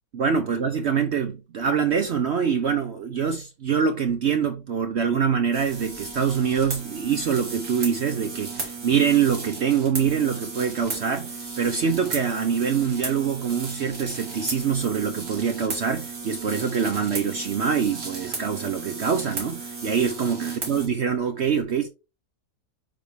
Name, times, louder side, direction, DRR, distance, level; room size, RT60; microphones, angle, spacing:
voice 1, 0.1-21.9, right 7 dB, 65° right, 0.7 m, -24 dB
sound 1, 5.5-20.9, right 4 dB, 45° right, 2.4 m, -35 dB
8.6 x 3.5 x 3.4 m
omnidirectional pair, 1.8 m